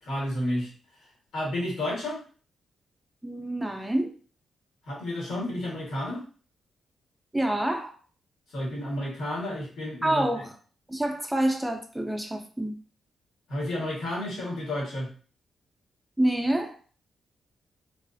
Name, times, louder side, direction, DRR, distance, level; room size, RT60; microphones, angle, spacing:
voice 1, 0.0-0.7 1.3-2.2 4.9-6.2 8.5-10.3 13.5-15.1, left 1 dB, 90° left, -3 dB, 1.3 m, -31 dB
voice 2, 3.2-4.1 7.3-8.0 10.0-10.5 10.9-12.7 16.2-16.7, right 1 dB, 5° right, 4 dB, 0.3 m, -27 dB
2.3 x 2.3 x 2.5 m, 0.40 s
cardioid pair, 130°, 0 cm